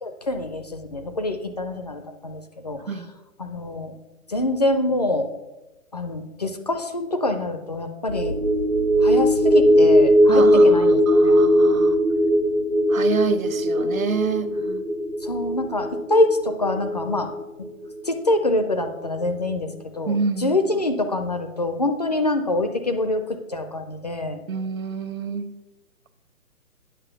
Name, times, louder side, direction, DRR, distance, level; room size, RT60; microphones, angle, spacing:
voice 1, 0.0-2.8 3.4-3.9 4.3-5.3 5.9-8.4 9.0-11.0 11.2-11.4 15.2-17.3 17.6-17.7 18.0-20.2 20.4-24.4, left 2 dB, 30° left, 7 dB, 0.5 m, -25 dB
sound 1, 8.1-18.7 19.0-19.2, equal, 80° left, 3.5 m, -19 dB
voice 2, 10.3-12.0 12.9-14.9 20.1-20.6 24.5-25.5, right 5 dB, 70° right, 11 dB, 0.9 m, -27 dB
9.1 x 5.8 x 5.8 m, 1.0 s
figure-of-eight pair, 135°, 42 cm